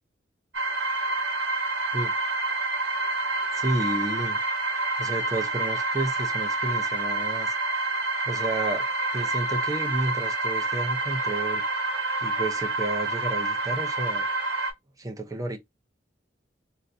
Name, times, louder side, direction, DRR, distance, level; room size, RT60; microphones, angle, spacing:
sound 1, 0.5-14.7, right 2 dB, 80° right, 1.1 m, -28 dB
voice 1, 3.5-4.4 5.0-7.5 8.3-8.9 9.1-11.6 12.2-14.3 15.0-15.6, right 2 dB, 20° right, 0.6 m, -31 dB
4.0 x 2.1 x 2.5 m
head